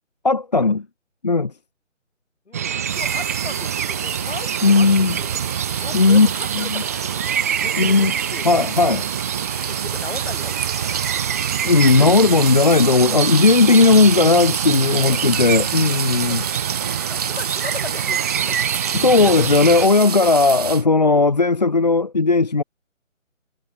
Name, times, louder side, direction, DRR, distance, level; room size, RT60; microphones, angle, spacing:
voice 1, 0.2-0.8 1.2-1.5 4.6-5.2 5.9-6.3 6.5-6.8 7.8-8.1 8.4-9.0 11.6-16.4 18.9-22.6, left 3 dB, 35° left, 0.6 m, -16 dB
voice 2, 2.5-5.3 5.8-7.3 7.6-8.6 9.7-10.5 10.8-11.2 12.0-12.1 13.6-13.9 14.9-15.3 16.1-16.5 17.1-18.6 19.1-19.6 20.2-20.3 21.0-21.3 21.7-21.9, left 4 dB, 60° left, 7.9 m, -37 dB
sound 1, 2.5-19.9, right 9 dB, 10° right, 1.0 m, -26 dB
sound 2, 2.8-20.8, right 7 dB, 30° right, 1.9 m, -29 dB
figure-of-eight pair, 160°, 39 cm